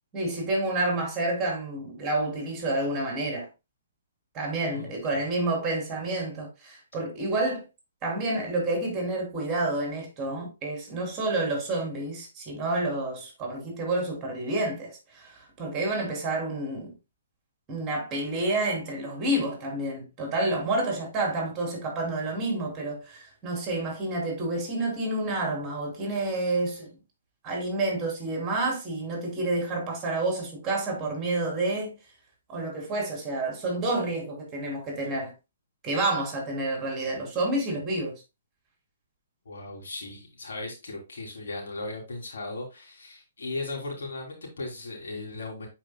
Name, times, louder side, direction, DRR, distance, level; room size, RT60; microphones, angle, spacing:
voice 1, 0.1-3.5 4.3-7.6 8.0-16.9 17.7-26.9 27.4-31.9 32.5-35.3 35.8-38.1, right 2 dB, 20° right, 3.0 m, -29 dB
voice 2, 4.7-5.2 39.4-45.7, left 2 dB, 70° left, 3.1 m, -37 dB
10.0 x 4.7 x 2.2 m
hypercardioid pair, 135°, 0 cm